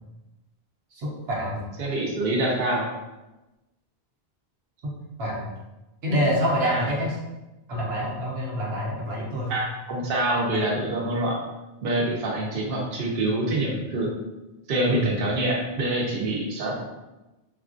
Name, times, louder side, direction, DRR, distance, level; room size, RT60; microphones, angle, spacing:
voice 1, 0.9-1.6 4.8-4.9 5.2-5.5 6.0-7.2 7.7-9.5 14.9-15.1, equal, 90° right, -4 dB, 1.0 m, -26 dB
voice 2, 1.8-2.9 6.6-6.8 9.5-11.4 11.8-14.1 14.7-16.7, right 1 dB, 65° right, -3 dB, 0.8 m, -25 dB
3.5 x 2.3 x 2.5 m, 1.0 s
omnidirectional pair, 1.0 m